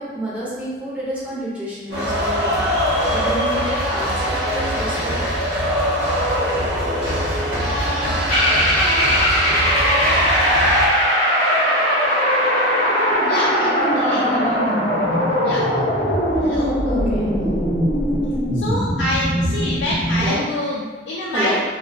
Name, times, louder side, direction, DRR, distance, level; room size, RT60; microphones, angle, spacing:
voice 1, 0.0-5.3 14.0-14.4 16.8-17.3 20.1-20.5 21.3-21.6, right 1 dB, 10° right, -8 dB, 0.6 m, -29 dB
sound 1, 1.9-10.9, equal, 60° right, 0.7 m, -22 dB
sound 2, 8.3-20.4, equal, 40° left, 0.8 m, -19 dB
voice 2, 13.2-14.7 15.4-15.7 16.4-16.7 18.6-21.6, left 1 dB, 70° left, -6 dB, 0.4 m, -26 dB
2.3 x 2.1 x 2.6 m, 1.3 s
head